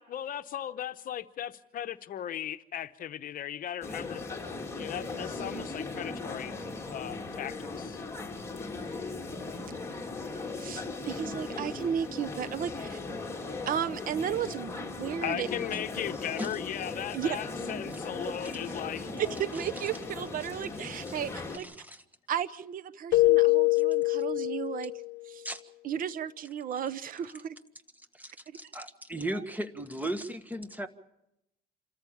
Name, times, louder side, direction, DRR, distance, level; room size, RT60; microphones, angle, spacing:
voice 1, 0.0-4.2 4.8-6.5 6.9-8.0 15.2-19.1, left 11 dB, 55° left, 11 dB, 0.9 m, -37 dB
sound 1, 3.8-21.6, left 3 dB, 15° left, 3.1 m, -38 dB
voice 2, 10.6-13.0 13.6-15.5 17.1-17.4 19.2-21.7 22.3-24.9 25.3-25.4 25.8-27.5, right 9 dB, 55° right, 16 dB, 0.9 m, -34 dB
voice 3, 21.5-22.0 25.4-25.6 28.1-30.9, right 1 dB, 10° right, 10 dB, 1.6 m, -36 dB
Keyboard (musical), 23.1-25.1, left 22 dB, 80° left, 0.6 m, -24 dB
27.5 x 14.0 x 7.2 m, 0.86 s
cardioid pair, 110°, 17 cm